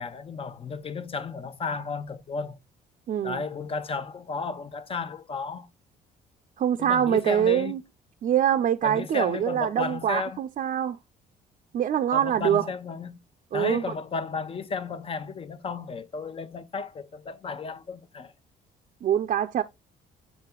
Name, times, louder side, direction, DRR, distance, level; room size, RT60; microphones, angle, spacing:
voice 1, 0.0-2.6 3.2-5.7 6.8-7.8 8.8-10.4 12.1-13.2 13.5-18.3, left 4 dB, 35° left, 1.0 m, -33 dB
voice 2, 3.1-3.4 6.6-7.8 8.2-11.0 11.7-12.6 13.5-13.8 19.0-19.6, right 10 dB, 50° right, 0.6 m, -24 dB
7.5 x 5.7 x 2.3 m
cardioid pair, 110°, 17 cm